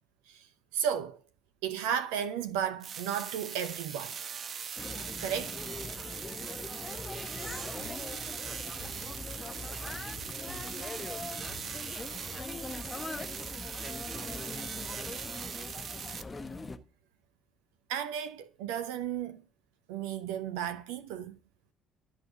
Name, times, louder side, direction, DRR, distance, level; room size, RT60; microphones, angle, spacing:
voice 1, 0.3-1.2 1.6-4.2 5.2-5.6 17.9-19.4 19.9-21.4, right 9 dB, 65° right, 0.7 m, -34 dB
sound 1, 2.8-16.2, right 7 dB, 45° right, 1.0 m, -40 dB
sound 2, 4.8-16.8, left 3 dB, 25° left, 1.3 m, -42 dB
voice 2, 7.1-7.8 8.3-8.9 9.6-10.5 11.0-11.7 12.2-13.1 13.7-14.3 14.7-15.8, right 1 dB, 10° right, 3.2 m, -51 dB
Drum kit, 7.4-12.8, left 4 dB, 70° left, 1.9 m, -53 dB
13.5 x 5.7 x 7.5 m
figure-of-eight pair, 50°, 0 cm